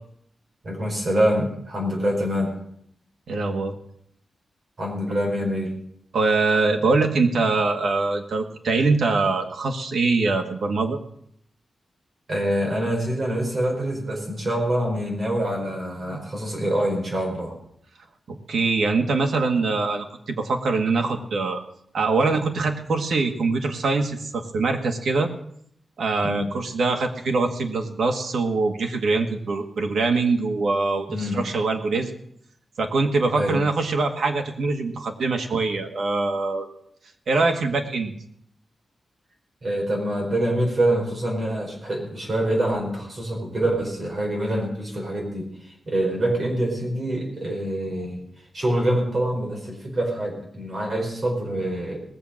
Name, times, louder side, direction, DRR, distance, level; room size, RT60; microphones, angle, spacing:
voice 1, 0.6-2.5 4.8-5.8 12.3-17.5 26.2-26.5 31.1-31.4 33.4-33.6 39.6-45.5 45.9-48.2 48.5-52.0, right 1 dB, 40° right, -1 dB, 4.8 m, -25 dB
voice 2, 3.3-3.7 6.1-11.0 18.3-21.6 21.9-25.3 26.0-32.1 32.8-36.7 37.3-38.1, right 3 dB, 75° right, 4 dB, 1.7 m, -23 dB
19.5 x 7.4 x 6.4 m, 0.70 s
wide cardioid pair, 165°, 0 cm